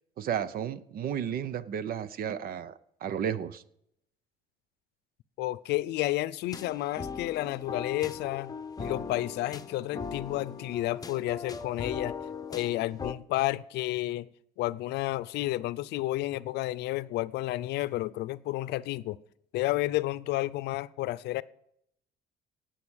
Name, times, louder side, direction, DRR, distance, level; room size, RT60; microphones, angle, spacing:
voice 1, 0.2-3.6, right 9 dB, 60° right, 0.9 m, -33 dB
voice 2, 5.4-12.2 12.5-14.3 14.6-19.2 19.5-21.4, left 16 dB, 80° left, 0.6 m, -31 dB
sound 1, 6.5-13.1, left 5 dB, 20° left, 0.9 m, -39 dB
18.5 x 7.7 x 6.4 m
cardioid pair, 110°, 17 cm